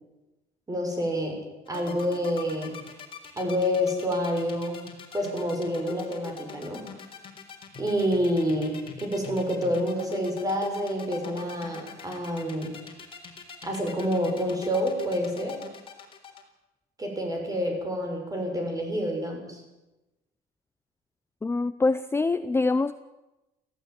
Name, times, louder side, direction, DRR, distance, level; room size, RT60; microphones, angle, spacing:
voice 1, 0.7-2.8 3.4-4.8 5.1-6.9 7.8-12.8 13.6-15.6 17.0-19.6, equal, 20° right, 3 dB, 6.8 m, -28 dB
sound 1, 1.7-16.4, left 6 dB, 30° left, 4.0 m, -42 dB
voice 2, 21.4-23.0, left 3 dB, 15° left, 13 dB, 0.6 m, -25 dB
18.5 x 15.5 x 9.2 m, 1.0 s
cardioid pair, 110°, 17 cm